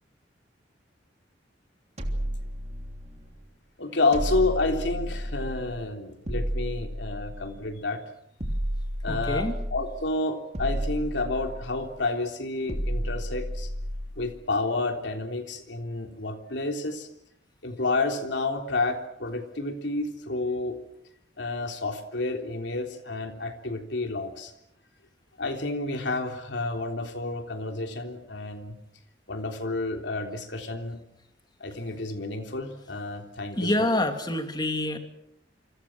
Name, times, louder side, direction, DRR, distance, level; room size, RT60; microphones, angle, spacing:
sound 1, 2.0-3.3 4.1-5.8 6.3-7.7 8.4-10.0 10.5-11.9 12.7-14.3, equal, 40° right, 3.3 m, -32 dB
voice 1, 3.8-8.0 9.0-13.7 14.2-17.1 17.6-20.8 21.4-24.5 25.4-28.8 29.3-31.0 31.6-34.0, left 2 dB, 70° left, 5 dB, 3.5 m, -30 dB
voice 2, 9.1-9.5 33.6-35.0, left 1 dB, 25° left, 5 dB, 2.9 m, -26 dB
28.5 x 25.5 x 6.3 m, 0.75 s
head